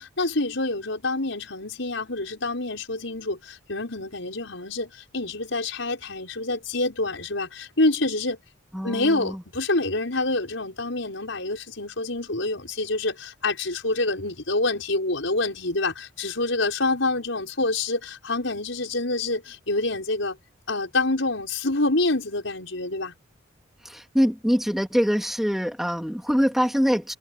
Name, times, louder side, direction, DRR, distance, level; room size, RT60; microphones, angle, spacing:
voice 1, 0.0-8.4 8.8-20.4 20.7-23.1, left 2 dB, 75° left, 6.1 m, -27 dB
voice 2, 8.7-9.4 23.8-27.1, equal, ahead, 3.1 m, -24 dB
head